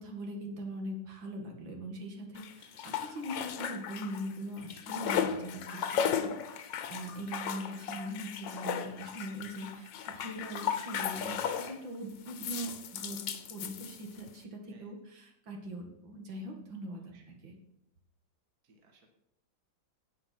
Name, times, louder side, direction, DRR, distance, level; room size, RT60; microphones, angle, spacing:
voice 1, 0.0-13.2 13.5-17.6, right 1 dB, 75° right, 2 dB, 2.6 m, -41 dB
sound 1, 2.4-4.3 4.6-11.8 12.3-14.3, left 8 dB, 75° left, 1.6 m, -36 dB
voice 2, 16.9-17.2 18.6-19.1, right 3 dB, 50° right, 3 dB, 2.1 m, -62 dB
17.0 x 5.7 x 5.9 m, 0.79 s
omnidirectional pair, 2.1 m